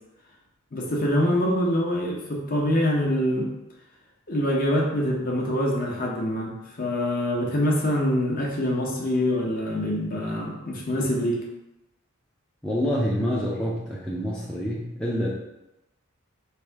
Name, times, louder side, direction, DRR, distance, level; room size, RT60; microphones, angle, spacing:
voice 1, 0.7-3.5 4.3-11.4, left 1 dB, 40° left, -2 dB, 0.8 m, -25 dB
voice 2, 12.6-15.3, equal, 5° left, -6 dB, 0.5 m, -27 dB
3.4 x 2.6 x 4.5 m, 0.92 s
head